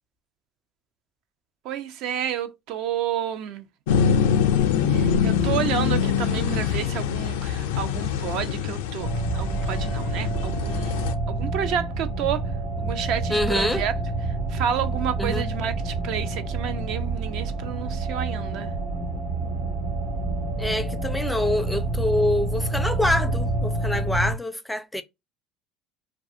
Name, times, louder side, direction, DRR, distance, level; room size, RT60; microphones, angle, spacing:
voice 1, 1.6-3.6 4.9-12.5 12.8-13.9 14.5-18.7, right 9 dB, 65° right, 0.5 m, -30 dB
sound 1, 3.9-11.1, left 7 dB, 90° left, 0.4 m, -24 dB
sound 2, 9.0-24.3, right 2 dB, 90° right, 1.0 m, -28 dB
voice 2, 13.3-13.8 15.2-15.5 20.6-25.0, left 1 dB, 5° left, 0.4 m, -25 dB
2.4 x 2.3 x 2.6 m
supercardioid pair, 95°, 0 cm